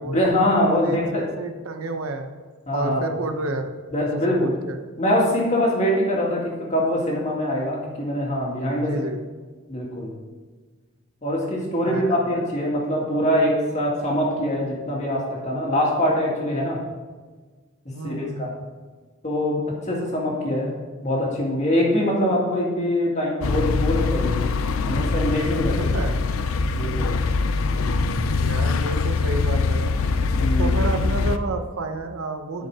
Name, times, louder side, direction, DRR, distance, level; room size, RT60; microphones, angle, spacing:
voice 1, 0.0-1.2 2.7-3.0 3.9-4.5 5.0-8.9 9.7-10.1 11.2-16.8 18.0-18.5 19.2-20.7 21.0-24.5 24.8-25.9 26.8-27.1 30.3-30.7, left 1 dB, 35° left, -3 dB, 2.1 m, -23 dB
voice 2, 0.7-2.4 2.7-3.7 4.0-4.8 8.7-9.2 11.8-12.2 17.9-18.5 25.8-26.2 28.4-30.0 30.6-32.7, right 2 dB, 80° right, 6 dB, 0.8 m, -30 dB
sound 1, 23.4-31.4, left 4 dB, 75° left, 0.5 m, -23 dB
10.5 x 5.8 x 4.8 m, 1.4 s
head